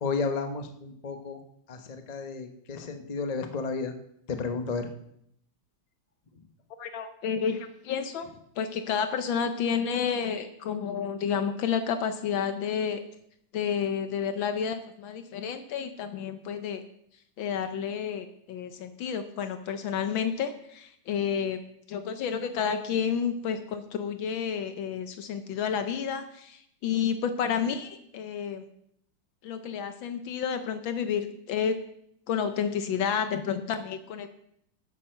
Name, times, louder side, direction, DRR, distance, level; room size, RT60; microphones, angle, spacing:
voice 1, 0.0-1.4 1.7-3.9 4.3-4.9, left 4 dB, 40° left, 6 dB, 0.6 m, -32 dB
voice 2, 6.8-8.3 8.6-13.0 13.5-16.8 17.4-21.6 21.9-28.7 29.4-31.8 32.3-34.3, left 7 dB, 75° left, 9 dB, 1.5 m, -30 dB
9.1 x 8.3 x 6.5 m, 0.72 s
omnidirectional pair, 2.3 m